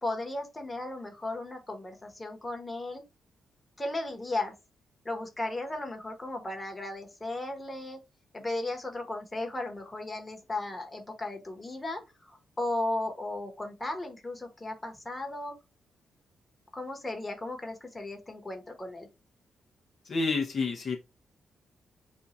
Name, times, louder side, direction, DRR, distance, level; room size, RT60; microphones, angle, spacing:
voice 1, 0.0-3.0 3.8-4.5 5.0-8.0 8.3-15.5 16.7-19.1, left 2 dB, 20° left, 1.0 m, -35 dB
voice 2, 20.1-21.0, left 4 dB, 55° left, 0.7 m, -29 dB
2.6 x 2.3 x 4.1 m
cardioid pair, 85°, 0 cm